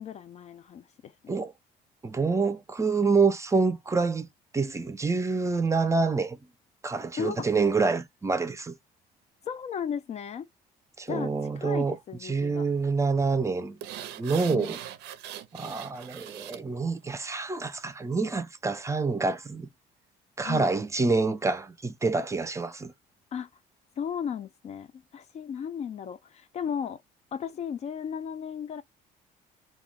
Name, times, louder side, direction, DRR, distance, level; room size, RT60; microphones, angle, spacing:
voice 1, 0.0-1.4 7.2-7.5 9.4-10.5 11.1-12.7 14.5-14.7 20.4-20.7 23.3-23.5 24.0-27.0 27.3-28.8, left 8 dB, 40° left, 0.3 m, -35 dB
voice 2, 2.0-4.3 4.5-6.4 6.8-8.7 11.0-12.0 12.2-13.8 14.2-14.8 15.5-19.7 20.4-22.9, right 4 dB, 15° right, 0.5 m, -27 dB
sound 1, 13.8-16.6 17.0-17.1, right 11 dB, 90° right, 0.5 m, -41 dB
2.3 x 2.1 x 3.4 m
cardioid pair, 110°, 17 cm